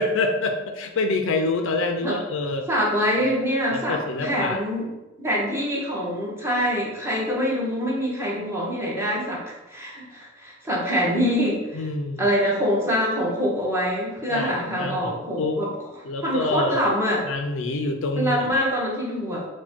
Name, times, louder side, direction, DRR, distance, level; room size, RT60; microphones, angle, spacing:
voice 1, 0.0-2.7 3.7-4.6 11.7-12.2 14.3-15.6 16.0-16.9 17.3-18.7, left 3 dB, 70° left, 5 dB, 0.4 m, -26 dB
voice 2, 2.7-4.9 5.2-11.8 12.2-15.7 16.2-17.2 18.2-19.5, equal, 15° right, -5 dB, 1.0 m, -25 dB
4.2 x 2.2 x 4.4 m, 1.0 s
head